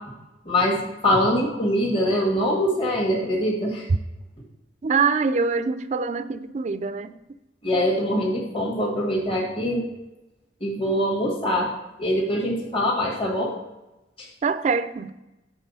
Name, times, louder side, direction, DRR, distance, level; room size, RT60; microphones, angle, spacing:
voice 1, 0.5-0.8 1.0-3.9 7.6-9.8 10.6-11.7 12.0-13.5, equal, 30° left, 1.8 m, -23 dB
voice 2, 4.8-7.1 14.4-15.1, right 5 dB, 40° right, 0.4 m, -24 dB
7.9 x 4.1 x 5.6 m
head